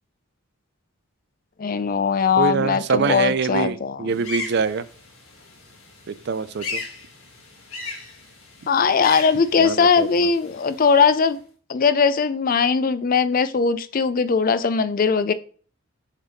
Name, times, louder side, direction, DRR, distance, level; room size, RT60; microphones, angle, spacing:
voice 1, 1.6-4.1 8.7-11.4 11.7-15.3, left 5 dB, 40° left, 13 dB, 0.4 m, -20 dB
voice 2, 2.4-4.9 6.1-6.8 9.6-10.3, right 5 dB, 50° right, 14 dB, 0.4 m, -24 dB
sound 1, 4.1-11.3, left 4 dB, 75° left, 2.3 m, -37 dB
7.2 x 3.5 x 4.0 m, 0.42 s
head